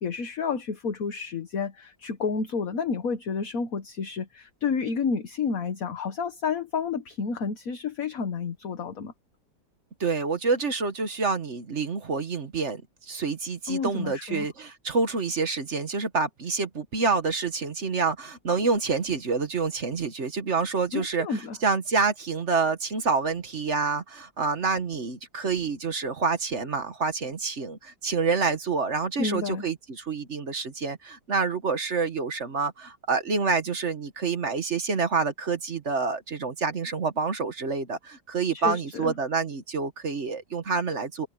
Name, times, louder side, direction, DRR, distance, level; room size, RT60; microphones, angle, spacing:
voice 1, 0.0-9.1 13.7-14.5 20.9-21.6 29.2-29.7 38.5-39.1, left 5 dB, 50° left, 1.6 m, -30 dB
voice 2, 10.0-12.8 13.1-41.3, right 4 dB, 40° right, 1.4 m, -27 dB
omnidirectional pair, 2.0 m